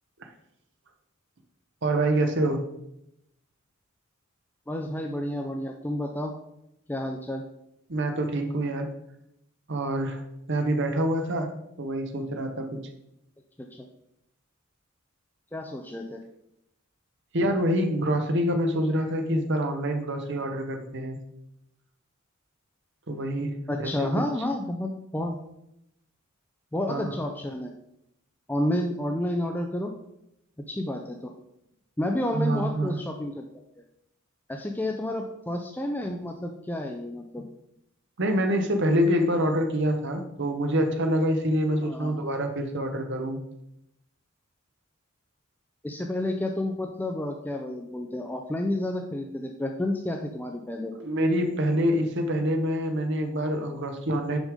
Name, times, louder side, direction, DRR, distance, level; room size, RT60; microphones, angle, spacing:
voice 1, 1.8-2.6 7.9-8.9 9.7-10.2 10.5-11.5 11.8-12.8 17.3-21.2 23.1-24.1 26.9-27.2 32.3-33.0 38.2-43.4 51.0-54.4, right 1 dB, 60° right, 5 dB, 0.9 m, -26 dB
voice 2, 4.7-6.3 6.9-7.4 13.6-13.9 15.5-16.2 23.7-25.4 26.7-27.7 28.5-29.9 30.7-31.3 32.0-33.5 34.5-37.5 41.8-42.2 45.8-50.9, left 1 dB, 10° left, 2 dB, 0.4 m, -30 dB
6.3 x 5.2 x 5.0 m, 0.82 s
head